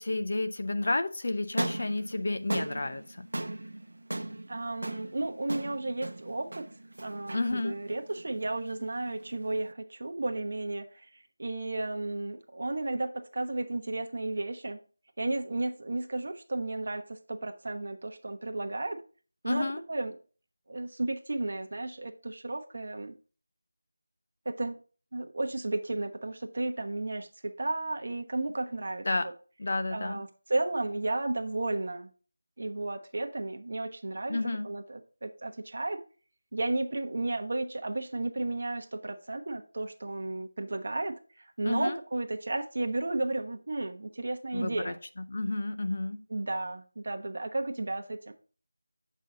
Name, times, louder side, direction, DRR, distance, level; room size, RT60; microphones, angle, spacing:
voice 1, 0.0-3.3 7.3-7.8 19.5-19.8 29.0-29.3 29.6-30.2 34.3-34.7 41.7-42.0 44.5-44.9 45.3-46.2, left 2 dB, 35° left, 8 dB, 0.6 m, -31 dB
sound 1, 1.4-9.7, right 1 dB, 70° right, 0.9 m, -38 dB
voice 2, 4.5-6.6 7.0-11.1 11.4-14.8 15.2-19.0 19.4-20.1 20.7-23.1 24.4-24.8 25.1-29.3 29.9-32.1 32.6-34.4 34.6-36.0 36.5-45.0 46.3-48.3, right 2 dB, 40° right, 4 dB, 1.0 m, -33 dB
8.3 x 5.5 x 3.8 m, 0.37 s
figure-of-eight pair, 180°, 0 cm